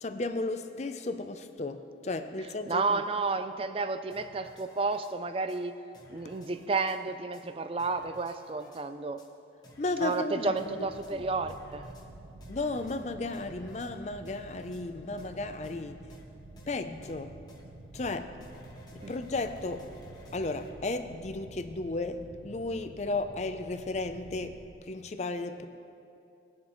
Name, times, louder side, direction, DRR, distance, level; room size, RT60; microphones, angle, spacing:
voice 1, 0.0-2.8 9.8-10.9 12.5-16.0 16.7-17.4 17.9-18.4 18.9-19.9 20.3-25.7, left 2 dB, 40° left, 0.5 m, -34 dB
voice 2, 2.7-5.8 6.1-9.3 10.0-11.8 19.0-19.1, right 3 dB, 30° right, 0.4 m, -31 dB
sound 1, 4.1-5.1 5.5-5.6 5.9-7.0 7.3-7.4 7.8-8.8 9.2-9.3 9.6-10.2 10.6-11.1 11.5-12.1 12.4-13.0 13.3-13.9 14.3-14.8 15.2-15.3 15.6-15.8 16.1-16.2 16.6-16.7 17.0-17.2 17.5-17.6 17.9-18.1 18.4-20.7, equal, 20° left, 1.2 m, -54 dB
sound 2, 10.8-24.7, right 2 dB, 85° right, 0.7 m, -50 dB
20.0 x 7.3 x 3.1 m
head